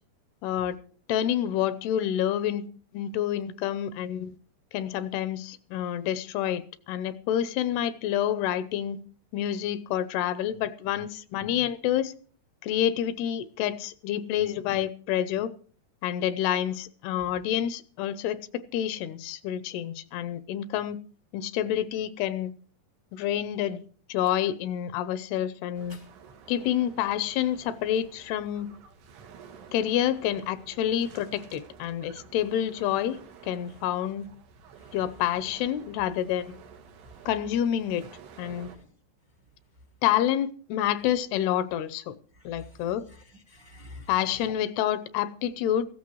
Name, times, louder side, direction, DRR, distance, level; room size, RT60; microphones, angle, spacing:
voice 1, 0.4-0.8 1.1-2.7 2.9-4.4 4.7-9.0 9.3-12.1 12.6-15.5 16.0-21.0 21.3-22.5 23.1-23.8 24.1-26.0 26.5-28.7 29.7-33.2 33.4-34.3 34.9-36.5 37.3-38.0 38.4-38.7 40.0-42.2 42.5-43.0 44.1-45.8, left 11 dB, 80° left, 16 dB, 2.7 m, -28 dB
sound 1, 25.7-38.8, right 6 dB, 85° right, 4.0 m, -51 dB
voice 2, 38.6-38.9 42.3-44.5, left 1 dB, 60° right, 3 dB, 1.2 m, -50 dB
18.0 x 14.5 x 3.1 m, 0.43 s
omnidirectional pair, 4.7 m